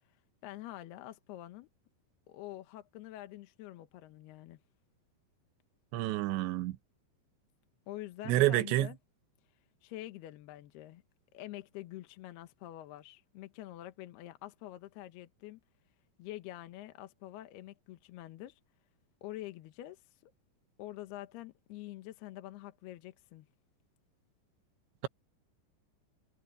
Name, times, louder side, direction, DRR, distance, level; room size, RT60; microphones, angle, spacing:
voice 1, 0.4-1.7 2.3-4.6 7.9-9.0 9.8-11.0 11.3-15.6 16.2-18.6 19.2-20.0 20.8-23.5, left 15 dB, 70° left, 2.9 m, -46 dB
voice 2, 5.9-6.8 8.3-8.9, right 15 dB, 80° right, 3.3 m, -28 dB
omnidirectional pair, 5.2 m